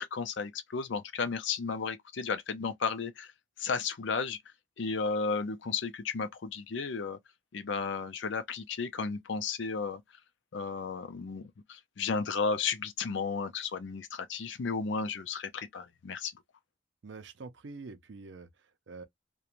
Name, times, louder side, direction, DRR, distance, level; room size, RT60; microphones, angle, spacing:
voice 1, 0.0-3.3 3.6-4.4 4.8-7.2 7.5-10.0 10.5-16.3, left 5 dB, 65° left, 0.5 m, -33 dB
voice 2, 17.0-19.0, right 3 dB, 60° right, 0.5 m, -46 dB
2.5 x 2.2 x 2.9 m
head